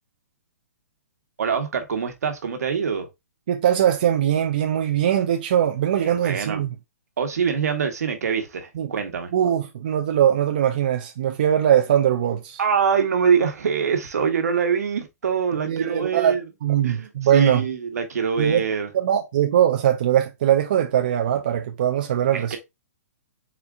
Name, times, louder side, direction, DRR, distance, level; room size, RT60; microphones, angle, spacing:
voice 1, 1.4-3.1 6.0-6.6 7.2-9.3 12.6-16.4 16.8-18.9 22.3-22.6, right 6 dB, 70° right, 1.2 m, -24 dB
voice 2, 3.5-6.7 8.8-8.9 9.3-12.6 15.6-16.3 16.6-17.6 18.4-18.6 18.9-22.5, right 10 dB, 35° right, 0.4 m, -21 dB
4.3 x 2.4 x 3.6 m
hypercardioid pair, 175°, 9 cm